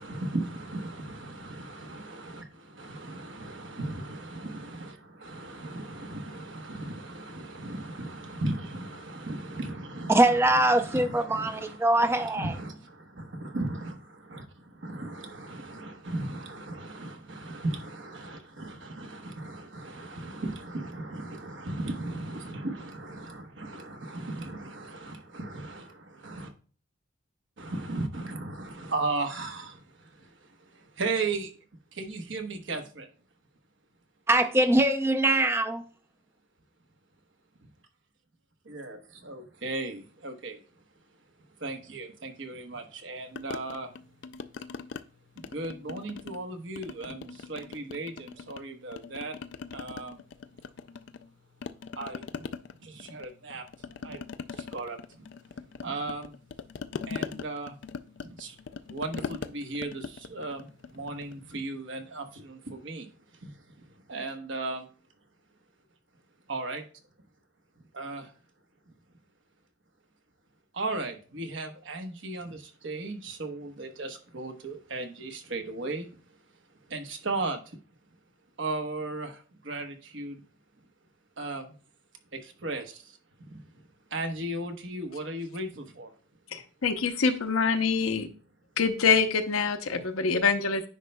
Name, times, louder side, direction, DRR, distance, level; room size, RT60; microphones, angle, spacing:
voice 1, 0.0-10.2 10.7-26.5 27.6-31.5 31.9-33.1 38.6-40.6 41.6-43.9 45.4-49.4 49.7-50.2 52.0-52.2 52.8-54.2 54.5-55.3 55.8-56.4 57.1-57.7 58.2-58.6 58.9-63.1 63.4-64.9 66.5-66.8 67.9-68.3 70.7-76.1 76.9-77.8 78.6-80.4 81.4-81.7 82.3-83.5 84.1-86.1, right 2 dB, 60° right, 1.0 m, -36 dB
voice 2, 10.1-12.6 34.3-35.8, right 1 dB, 10° right, 0.4 m, -23 dB
sound 1, 43.4-45.0 45.4-46.4 46.8-48.6 48.9-51.3 51.6-61.4, left 5 dB, 55° left, 0.3 m, -40 dB
voice 3, 86.5-88.3 88.8-90.8, left 5 dB, 85° left, 0.7 m, -25 dB
9.8 x 5.2 x 2.2 m
head